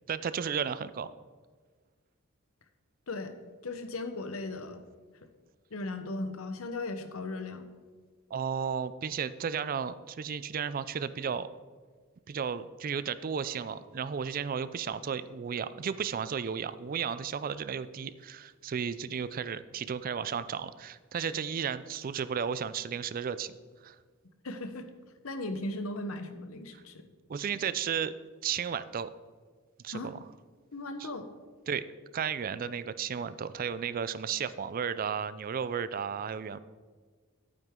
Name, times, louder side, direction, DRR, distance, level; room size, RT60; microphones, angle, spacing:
voice 1, 0.1-1.1 8.3-11.5 12.3-23.5 23.8-24.0 26.7-26.8 27.3-28.1 28.4-29.1 29.8-30.2 31.0-31.1 31.7-31.8 32.1-36.6, right 7 dB, 40° right, 15 dB, 0.4 m, -34 dB
voice 2, 3.6-4.8 5.7-7.7 24.4-24.9 25.2-27.1 29.9-30.1 30.7-31.3, left 2 dB, 80° left, 8 dB, 1.0 m, -37 dB
11.0 x 9.1 x 3.7 m, 1.5 s
head